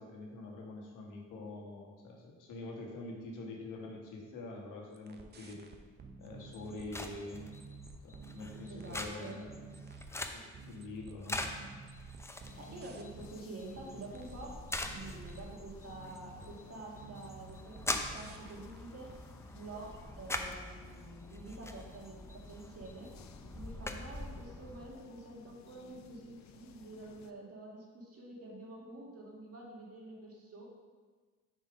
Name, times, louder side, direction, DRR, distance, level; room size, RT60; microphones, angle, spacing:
voice 1, 0.0-5.6 6.2-7.5 8.0-9.6 10.3-11.4, left 2 dB, 90° left, 0 dB, 1.4 m, -45 dB
sound 1, 4.9-6.9 7.3-9.1 9.5-10.1 10.5-13.3 13.7-14.4 14.8-15.5 15.9-16.6 16.9-18.8 19.1-19.2, right 4 dB, 35° right, 0.7 m, -51 dB
sound 2, 6.2-24.9, left 1 dB, 10° left, 0.6 m, -44 dB
voice 2, 8.7-9.4 12.5-19.1 19.5-23.1 23.5-30.6, right 2 dB, 50° right, -2 dB, 1.9 m, -48 dB
sound 3, 12.5-27.3, left 8 dB, 65° left, 0.5 m, -58 dB
6.6 x 4.6 x 5.0 m, 1.4 s
cardioid pair, 90°, 30 cm